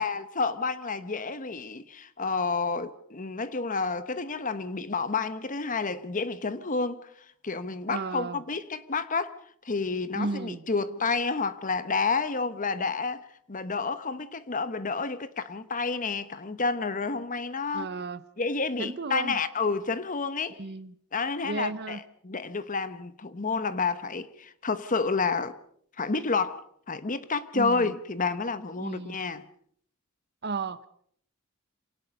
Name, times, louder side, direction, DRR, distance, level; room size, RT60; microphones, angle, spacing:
voice 1, 0.0-7.1 7.4-9.3 9.6-17.9 18.4-20.6 21.1-25.5 26.0-29.4, left 4 dB, 40° left, 1.0 m, -30 dB
voice 2, 7.9-8.4 10.1-10.7 17.7-18.2 18.8-19.4 20.6-20.9 21.4-22.0 27.5-27.9 28.8-29.2 30.4-30.9, right 3 dB, 50° right, 0.9 m, -34 dB
27.5 x 18.0 x 5.3 m
head